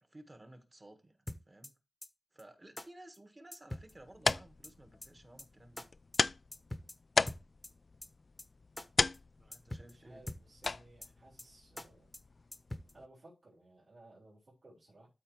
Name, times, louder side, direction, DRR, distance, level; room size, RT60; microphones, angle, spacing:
voice 1, 0.0-1.2 1.4-1.8 2.3-5.9 9.4-10.2, right 1 dB, 35° right, 1.5 m, -56 dB
sound 1, 1.3-1.7 2.0-2.1 2.4-2.5 2.8-2.9 3.1-3.2 3.5-3.9 4.3-4.7 5.0-5.1 5.4-5.5 5.8-5.9 6.1-6.2 6.5-6.9 7.3-7.7 8.0-8.1 8.4-8.5 8.8-8.9 9.1-9.2 9.5-9.9 10.3-10.7 11.0-11.1 11.4-11.5 11.8-11.9 12.1-12.2 12.5-12.9, left 1 dB, 25° left, 0.9 m, -43 dB
sound 2, 3.8-13.1, left 3 dB, 55° left, 0.3 m, -37 dB
voice 2, 9.8-12.1 12.9-15.1, right 2 dB, 60° right, 3.7 m, -59 dB
12.5 x 4.3 x 3.1 m
wide cardioid pair, 70°, 0 cm